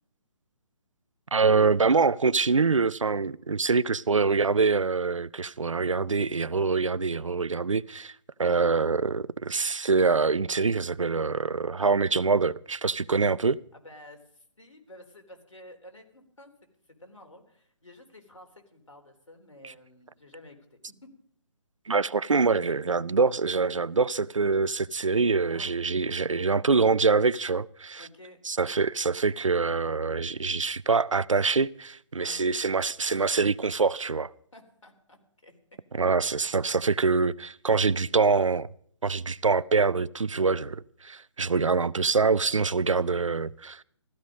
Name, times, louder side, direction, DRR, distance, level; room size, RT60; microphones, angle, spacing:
voice 1, 1.3-8.1 8.4-13.6 19.6-19.7 21.9-28.1 28.5-34.3 35.9-38.7 39.0-43.8, right 4 dB, 85° right, 0.6 m, -25 dB
voice 2, 13.7-16.5 17.0-21.1 22.6-22.7 25.5-25.8 28.0-28.4 32.2-32.5 34.5-35.8 36.2-36.5 42.9-43.2, left 1 dB, 80° left, 3.8 m, -51 dB
15.0 x 14.5 x 5.2 m
figure-of-eight pair, 145°, 16 cm